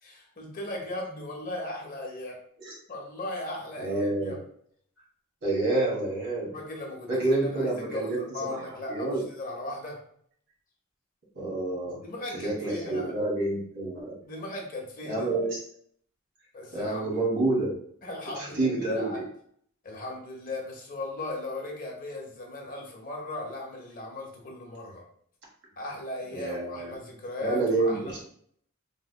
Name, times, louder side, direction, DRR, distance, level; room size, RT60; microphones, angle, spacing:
voice 1, 0.0-2.4 2.9-4.4 6.5-10.0 12.0-13.2 14.2-15.3 16.5-17.2 18.0-19.2 19.8-25.0 25.7-28.2, left 1 dB, 40° left, 0 dB, 0.9 m, -37 dB
voice 2, 3.8-4.3 5.4-6.6 7.1-8.6 8.9-9.2 11.3-12.0 12.3-14.1 15.1-15.6 16.7-17.7 18.6-19.2 26.3-26.9 27.4-28.2, right 2 dB, 55° right, -4 dB, 1.5 m, -28 dB
3.5 x 3.2 x 2.2 m, 0.63 s
head